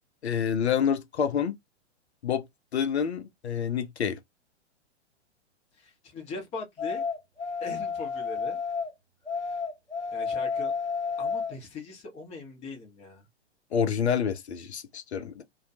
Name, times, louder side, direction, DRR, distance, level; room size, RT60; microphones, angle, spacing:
voice 1, 0.2-1.6 2.2-2.4 2.7-4.2 13.7-15.4, left 7 dB, 65° left, 0.6 m, -27 dB
voice 2, 5.8-7.0 7.6-8.6 10.1-10.7 11.2-13.2, left 3 dB, 20° left, 0.7 m, -40 dB
sound 1, 6.8-8.9 9.3-11.6, left 5 dB, 85° left, 0.9 m, -31 dB
2.2 x 2.1 x 2.6 m
figure-of-eight pair, 110°, 35 cm